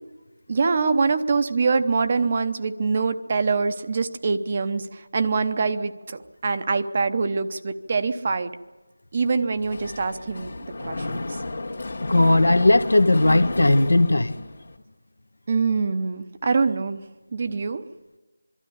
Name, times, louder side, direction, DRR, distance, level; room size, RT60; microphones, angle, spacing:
voice 1, 0.5-8.5 9.1-11.2 15.5-17.0 17.3-17.8, right 4 dB, 30° right, 10 dB, 0.8 m, -24 dB
Mechanisms, 9.6-14.8, left 2 dB, 50° left, 1.9 m, -33 dB
voice 2, 12.0-14.5, left 2 dB, 75° left, 9 dB, 1.3 m, -18 dB
23.0 x 13.0 x 10.0 m, 1.2 s
figure-of-eight pair, 170°, 0 cm